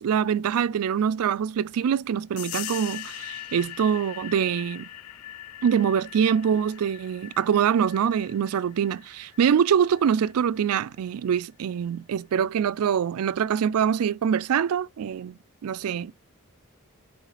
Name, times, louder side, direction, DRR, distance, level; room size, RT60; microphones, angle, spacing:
voice 1, 0.0-4.9 5.6-16.1, right 8 dB, 75° right, 0.4 m, -24 dB
sound 1, 2.4-10.7, left 13 dB, 80° left, 0.6 m, -41 dB
10.0 x 3.6 x 3.1 m
head